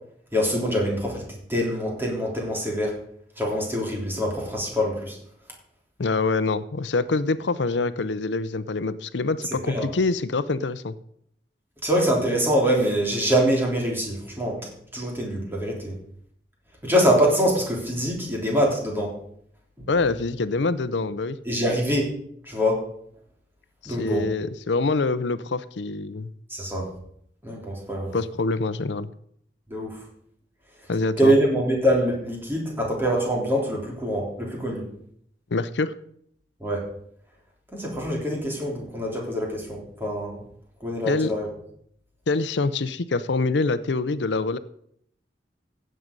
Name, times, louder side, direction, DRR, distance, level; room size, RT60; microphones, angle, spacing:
voice 1, 0.3-1.2 1.5-3.0 3.4-5.2 9.5-9.9 11.8-14.6 14.9-15.9 16.8-19.1 21.5-22.1 22.5-22.8 23.9-24.3 26.5-26.9 27.4-28.1 29.7-30.0 31.2-34.9 36.6-36.9 37.7-40.4 40.8-41.5, equal, 10° right, -2 dB, 3.4 m, -24 dB
voice 2, 6.0-10.9 19.9-21.4 23.8-26.3 28.1-29.1 30.9-31.3 35.5-35.9 41.1-41.3 42.3-44.6, left 3 dB, 85° left, 14 dB, 0.6 m, -25 dB
15.5 x 7.8 x 5.3 m, 0.68 s
head